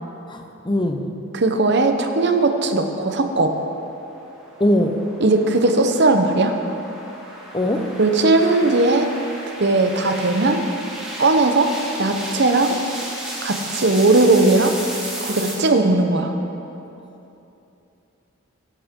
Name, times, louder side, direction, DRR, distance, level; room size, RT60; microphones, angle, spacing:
voice 1, 0.3-1.1 4.6-5.0 7.5-7.9, left 1 dB, 20° left, 4 dB, 0.7 m, -21 dB
voice 2, 1.3-3.6 5.2-6.6 8.0-9.1 9.6-10.6 11.2-11.7 12.0-12.7 13.4-14.7 15.2-16.3, right 2 dB, 50° right, 6 dB, 0.8 m, -18 dB
sound 1, 3.5-15.5, right 1 dB, 5° right, 2.1 m, -34 dB
16.0 x 10.0 x 3.7 m, 2.9 s
head